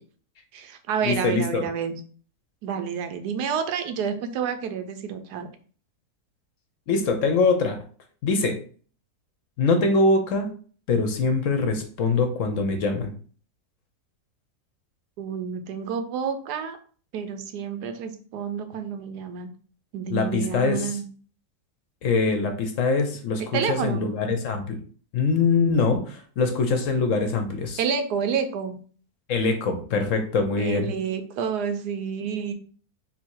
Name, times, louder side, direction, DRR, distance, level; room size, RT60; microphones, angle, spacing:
voice 1, 0.5-2.0 2.6-5.5 15.2-16.8 17.1-19.5 19.9-21.0 23.5-24.0 27.8-28.8 30.6-32.5, right 7 dB, 90° right, 8 dB, 1.2 m, -29 dB
voice 2, 1.0-1.7 6.9-7.8 8.2-8.6 9.6-10.5 10.9-13.1 20.1-21.0 22.0-24.8 25.1-27.8 29.3-30.9, left 3 dB, 65° left, 6 dB, 0.9 m, -23 dB
3.8 x 2.7 x 4.5 m, 0.42 s
omnidirectional pair, 1.7 m